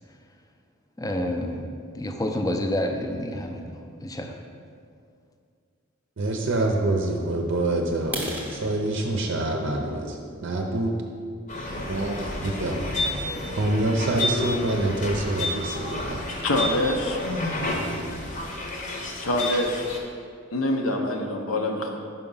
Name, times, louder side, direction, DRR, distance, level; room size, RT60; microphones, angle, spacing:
voice 1, 1.0-4.4, left 1 dB, 15° left, 4 dB, 0.4 m, -29 dB
voice 2, 6.2-8.2 8.5-10.9 11.8-12.8 13.5-16.2, right 2 dB, 55° right, 1 dB, 0.6 m, -26 dB
sound 1, 8.0-11.8 12.3-12.5 13.0-13.1 13.5-13.6 14.0-14.1 14.5-14.6 14.8-15.3, right 1 dB, 10° right, 0.8 m, -37 dB
sound 2, 11.5-20.0, left 1 dB, 35° left, 0.8 m, -30 dB
voice 3, 16.4-17.2 19.2-19.9 20.5-22.0, left 1 dB, 75° left, 2 dB, 0.7 m, -25 dB
5.7 x 4.8 x 5.4 m, 2.2 s
head